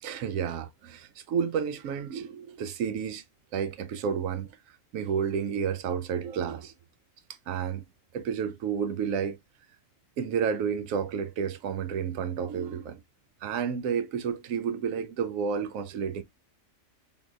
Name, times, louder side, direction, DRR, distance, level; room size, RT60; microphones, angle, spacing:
voice 1, 0.0-3.2 3.5-6.7 7.5-7.8 8.1-9.4 10.2-13.0 13.4-16.2, right 7 dB, 80° right, 1.0 m, -31 dB
3.6 x 2.9 x 2.4 m
omnidirectional pair, 1.4 m